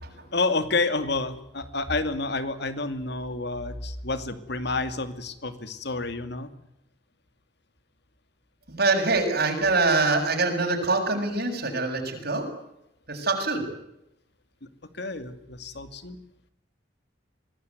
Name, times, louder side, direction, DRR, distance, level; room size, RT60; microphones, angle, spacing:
voice 1, 0.3-6.5 14.9-16.2, left 3 dB, 60° left, 10 dB, 2.5 m, -29 dB
voice 2, 8.7-12.4 13.1-13.6, right 3 dB, 60° right, 3 dB, 7.0 m, -24 dB
25.0 x 19.0 x 9.6 m, 0.82 s
head